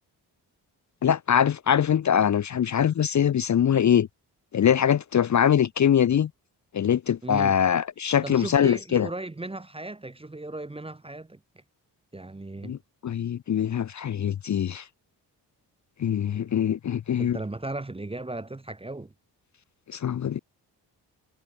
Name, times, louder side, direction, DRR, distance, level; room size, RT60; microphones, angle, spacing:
voice 1, 1.0-4.1 4.5-6.3 6.7-9.1 12.6-12.8 13.0-14.8 16.0-17.4 19.9-20.4, left 9 dB, 40° left, 0.6 m, -23 dB
voice 2, 7.2-7.6 8.2-11.4 12.1-12.8 17.2-19.1, right 2 dB, 15° right, 0.8 m, -36 dB
supercardioid pair, 55°, 44 cm